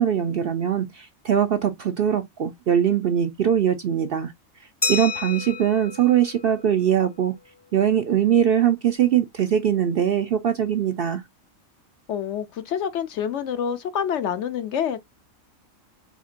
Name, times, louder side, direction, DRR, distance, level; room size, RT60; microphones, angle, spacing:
voice 1, 0.0-4.3 4.9-7.4 7.7-11.2, right 9 dB, 60° right, 0.6 m, -21 dB
Glass, 4.8-7.3, left 4 dB, 25° left, 0.7 m, -31 dB
voice 2, 12.1-15.0, left 8 dB, 65° left, 0.8 m, -27 dB
5.0 x 3.6 x 2.5 m
omnidirectional pair, 1.4 m